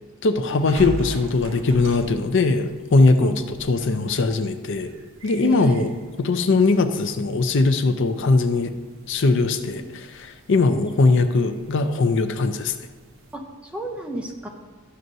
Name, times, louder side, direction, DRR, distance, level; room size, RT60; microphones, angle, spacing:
voice 1, 0.2-4.9 5.2-5.9 6.2-8.7 9.1-12.8, left 3 dB, 60° left, 8 dB, 0.5 m, -20 dB
sound 1, 0.5-13.4, right 2 dB, 60° right, 1.0 m, -42 dB
voice 2, 5.4-6.0 8.0-8.1 10.7-10.8 13.3-14.5, right 1 dB, 5° right, 1 dB, 0.7 m, -32 dB
12.5 x 6.5 x 2.7 m, 1.4 s
head